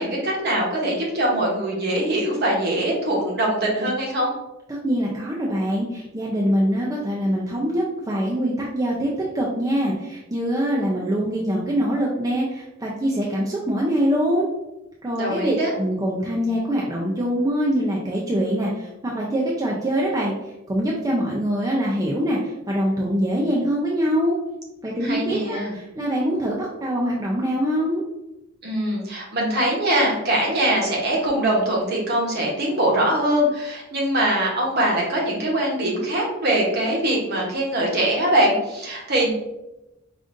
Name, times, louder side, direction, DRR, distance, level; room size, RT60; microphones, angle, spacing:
voice 1, 0.0-4.3 15.2-15.7 25.0-25.7 28.6-39.3, right 1 dB, 50° right, -2 dB, 1.0 m, -22 dB
voice 2, 4.7-14.5 15.0-20.3 20.7-24.4 24.8-28.0, equal, 15° right, -4 dB, 0.4 m, -24 dB
5.0 x 2.4 x 2.5 m, 0.97 s
head